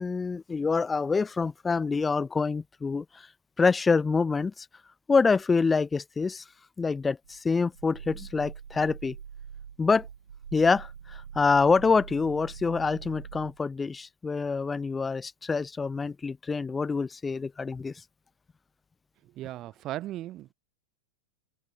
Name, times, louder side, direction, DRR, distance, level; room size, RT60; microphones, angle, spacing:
voice 1, 0.0-3.3 3.6-4.7 5.1-6.4 6.8-9.2 9.8-10.1 10.5-17.9, left 4 dB, 15° left, 0.6 m, -26 dB
Growling, 7.2-13.6, right 7 dB, 70° right, 4.9 m, -43 dB
voice 2, 19.4-20.5, right 14 dB, 35° right, 0.4 m, -37 dB
open air
figure-of-eight pair, 90°, 0 cm